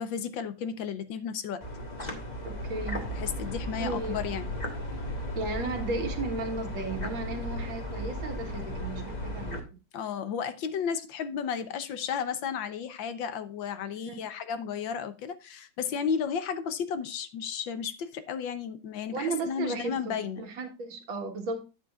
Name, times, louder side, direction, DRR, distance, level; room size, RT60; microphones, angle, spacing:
voice 1, 0.0-1.6 3.1-4.5 9.9-20.5, left 7 dB, 70° left, 1.5 m, -33 dB
sound 1, 1.6-9.6, left 1 dB, 25° left, 1.4 m, -35 dB
voice 2, 2.4-3.1 3.8-4.2 5.3-9.8 14.1-14.2 19.1-21.6, right 3 dB, 75° right, 2.4 m, -34 dB
10.5 x 8.3 x 2.4 m
omnidirectional pair, 2.2 m